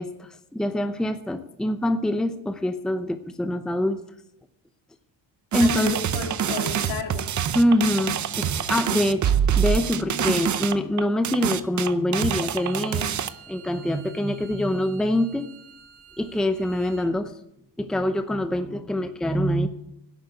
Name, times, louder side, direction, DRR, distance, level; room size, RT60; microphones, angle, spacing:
voice 1, 0.0-4.0 5.5-6.0 7.5-13.2 13.5-15.5 16.2-17.3 17.8-19.7, left 1 dB, ahead, 9 dB, 0.7 m, -25 dB
sound 1, 5.5-13.3, right 8 dB, 40° right, 0.7 m, -25 dB
voice 2, 5.6-7.3 10.0-10.3, left 5 dB, 75° left, 2 dB, 3.0 m, -33 dB
Bowed string instrument, 12.4-17.1, right 8 dB, 85° right, 3.9 m, -49 dB
11.5 x 8.4 x 8.1 m, 0.79 s
cardioid pair, 125°, 45 cm